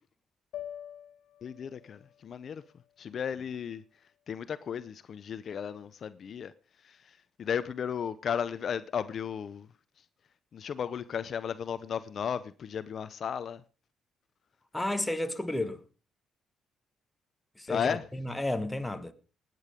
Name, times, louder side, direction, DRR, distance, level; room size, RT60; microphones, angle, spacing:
sound 1, 0.5-4.8, left 11 dB, 80° left, 1.9 m, -48 dB
voice 1, 1.4-2.6 3.0-3.8 4.3-6.5 6.8-9.7 10.5-13.6 17.7-18.0, left 7 dB, 55° left, 0.7 m, -34 dB
voice 2, 14.7-15.8 17.6-19.1, left 1 dB, 10° left, 1.6 m, -32 dB
18.5 x 9.3 x 5.1 m
cardioid pair, 90°, 0 cm